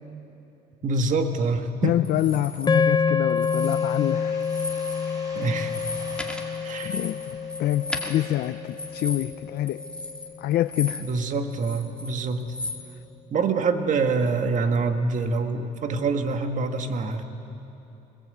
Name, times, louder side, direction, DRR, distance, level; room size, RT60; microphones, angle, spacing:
voice 1, 0.8-2.0 5.3-5.7 6.6-7.0 11.0-12.4 13.3-17.2, right 4 dB, 50° right, 6 dB, 1.8 m, -25 dB
voice 2, 1.8-4.5 5.1-5.2 6.8-9.8 10.4-11.0, left 13 dB, 65° left, 11 dB, 0.6 m, -26 dB
sound 1, 2.0-2.7 3.3-4.1 4.4-5.1 5.4-11.2 11.5-12.8, left 2 dB, 5° left, 2.1 m, -36 dB
sound 2, 2.7-11.0, left 6 dB, 25° left, 0.5 m, -28 dB
sound 3, 3.5-9.0, equal, 20° right, 4.9 m, -47 dB
25.0 x 21.0 x 8.0 m, 2.9 s
cardioid pair, 110°, 17 cm